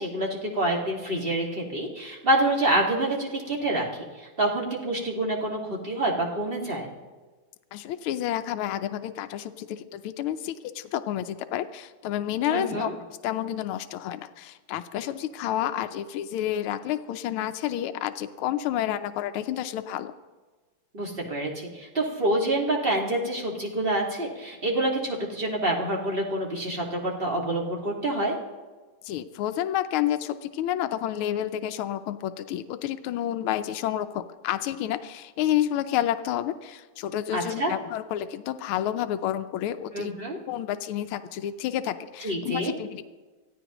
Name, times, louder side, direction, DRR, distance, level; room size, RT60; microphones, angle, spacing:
voice 1, 0.0-6.9 12.5-12.9 20.9-28.3 37.3-37.7 39.9-40.4 42.2-42.7, right 1 dB, 25° right, -1 dB, 2.0 m, -27 dB
voice 2, 7.7-12.9 13.2-20.1 29.0-40.2 40.5-43.0, left 11 dB, 80° left, 9 dB, 1.5 m, -30 dB
24.0 x 15.5 x 3.0 m, 1.3 s
omnidirectional pair, 2.4 m